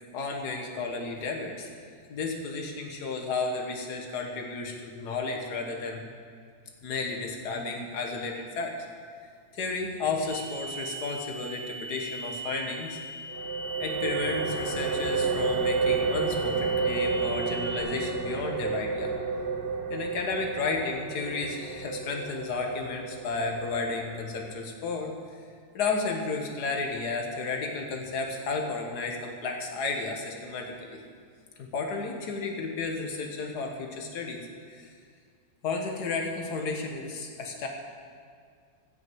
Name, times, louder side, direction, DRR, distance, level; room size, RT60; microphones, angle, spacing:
voice 1, 0.1-1.7 2.1-6.0 6.8-8.8 9.5-13.0 13.8-19.1 19.9-25.1 25.7-31.0 31.6-34.9 35.6-37.7, left 3 dB, 60° left, 2 dB, 1.9 m, -33 dB
sound 1, 10.2-17.8, right 2 dB, 85° left, 5.0 m, -39 dB
sound 2, 13.3-24.7, right 4 dB, 65° right, 1.8 m, -31 dB
15.5 x 6.4 x 7.9 m, 2.1 s
omnidirectional pair, 2.1 m